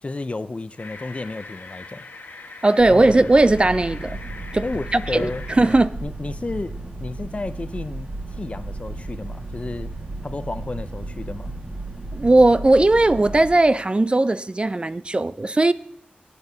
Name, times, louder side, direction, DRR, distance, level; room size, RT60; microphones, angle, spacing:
voice 1, 0.0-2.1 2.9-3.1 4.6-5.4 6.0-9.9 10.2-11.6, left 2 dB, 40° left, 0.4 m, -32 dB
sound 1, 0.8-5.8, left 3 dB, 75° left, 1.2 m, -41 dB
voice 2, 2.6-4.2 4.5-4.6 5.1-5.3 5.6-5.9 12.1-15.7, right 2 dB, 30° right, 0.4 m, -17 dB
sound 2, 2.8-13.5, right 2 dB, 50° right, 1.7 m, -34 dB
17.0 x 8.1 x 2.7 m
cardioid pair, 55°, 3 cm